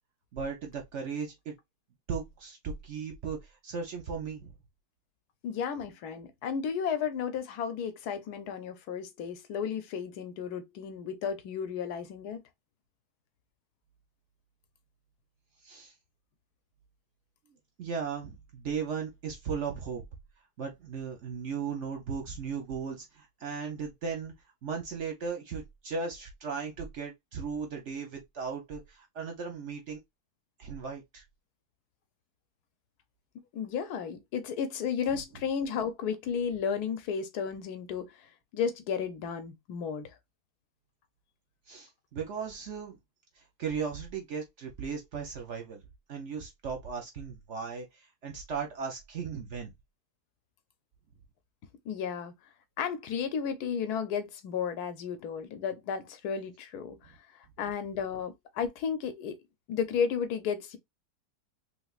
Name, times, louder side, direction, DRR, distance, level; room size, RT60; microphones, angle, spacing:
voice 1, 0.3-1.5 2.1-4.5 15.6-15.9 17.8-20.0 20.6-24.3 24.6-30.0 30.6-31.2 35.1-35.2 41.7-43.0 43.4-45.8 46.1-49.7, right 6 dB, 60° right, 0.8 m, -37 dB
voice 2, 5.4-12.4 33.5-38.1 38.5-40.1 51.8-52.3 52.8-57.1 57.6-59.4 59.7-60.8, left 7 dB, 70° left, 1.2 m, -33 dB
3.3 x 3.2 x 2.3 m
omnidirectional pair, 1.8 m